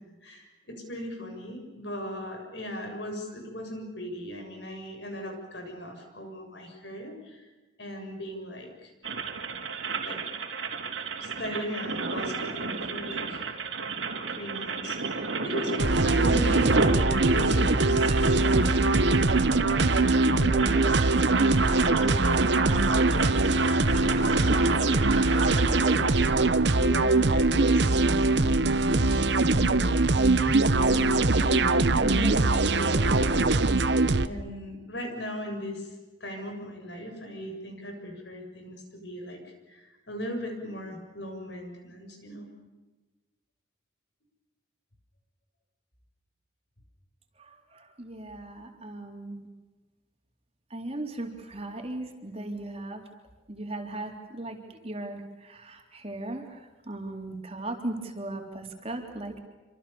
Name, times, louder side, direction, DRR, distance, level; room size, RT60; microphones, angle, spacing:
voice 1, 0.2-7.5 7.8-8.9 10.0-10.2 11.2-13.5 14.4-20.9 21.8-23.1 23.9-27.9 28.8-29.2 29.5-29.8 30.8-33.9 34.2-35.9 36.2-42.5, equal, 65° left, 3 dB, 7.5 m, -38 dB
sound 1, 9.0-26.1, right 4 dB, 85° right, 3.5 m, -32 dB
sound 2, 15.8-34.3, right 2 dB, 60° right, 1.0 m, -22 dB
voice 2, 47.4-49.5 50.7-53.0 53.5-59.4, right 2 dB, 30° right, 3 dB, 3.6 m, -38 dB
27.5 x 26.0 x 7.1 m, 1.2 s
head